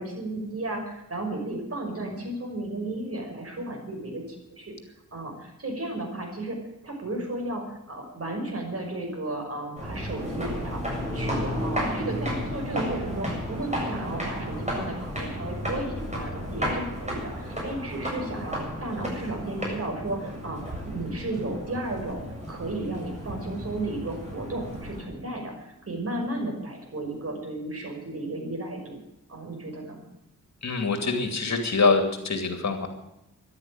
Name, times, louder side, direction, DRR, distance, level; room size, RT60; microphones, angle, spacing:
voice 1, 0.0-4.7 5.1-6.6 6.8-10.8 11.1-22.2 22.5-28.9 29.3-30.0, right 2 dB, 45° right, 2 dB, 5.9 m, -34 dB
sound 1, 9.8-25.0, equal, 20° right, 7.5 m, -33 dB
voice 2, 30.6-32.9, left 4 dB, 55° left, 5 dB, 2.7 m, -24 dB
13.5 x 11.5 x 9.0 m, 0.86 s
wide cardioid pair, 85°, 32 cm